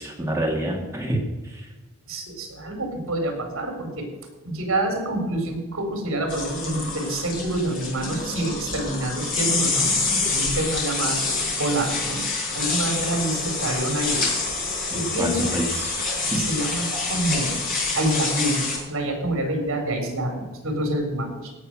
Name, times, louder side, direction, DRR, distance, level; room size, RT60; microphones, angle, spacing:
voice 1, 0.0-1.7 15.2-16.0 16.3-16.4, right 1 dB, 10° right, -1 dB, 1.8 m, -27 dB
voice 2, 2.1-4.1 4.4-12.2 12.5-14.2 14.9-15.5 16.3-17.6 17.9-18.6 18.9-21.5, right 1 dB, 70° right, 4 dB, 4.0 m, -27 dB
sound 1, 6.3-18.8, left 3 dB, 40° left, 4.1 m, -27 dB
17.0 x 6.6 x 6.1 m, 1.3 s
head